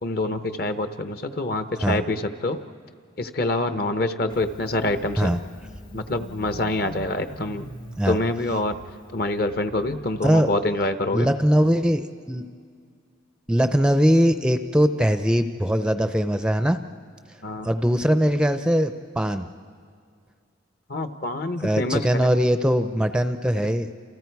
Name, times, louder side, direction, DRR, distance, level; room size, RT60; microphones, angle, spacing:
voice 1, 0.0-2.6 3.2-5.4 5.9-7.7 8.1-8.8 9.1-11.3 17.4-17.7 20.9-22.3, left 2 dB, 50° left, 9 dB, 0.9 m, -26 dB
Engine starting, 4.3-10.8, equal, 85° left, 3.5 m, -43 dB
voice 2, 10.2-10.5 11.1-12.5 13.5-16.8 17.6-19.5 21.6-23.9, equal, 5° right, 9 dB, 0.5 m, -21 dB
29.5 x 28.5 x 4.7 m, 2.1 s
head